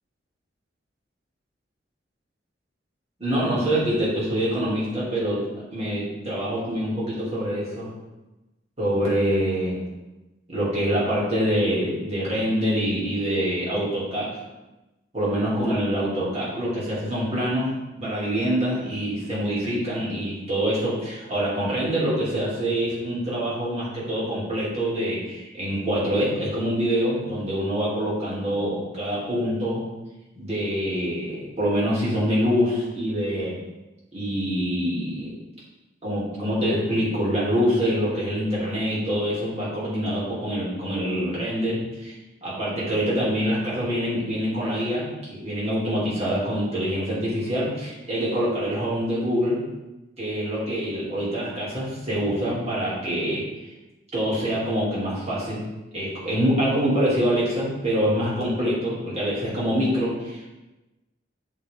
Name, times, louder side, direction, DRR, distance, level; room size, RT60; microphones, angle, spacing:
voice 1, 3.2-5.4 5.7-7.9 8.8-9.9 10.5-14.4 15.1-29.8 30.3-33.6 34.1-35.3 36.0-42.1 42.4-49.6 50.2-53.4 54.1-55.6 55.9-60.5, equal, 35° right, -7 dB, 2.6 m, -25 dB
10.0 x 4.4 x 3.6 m, 1.1 s
head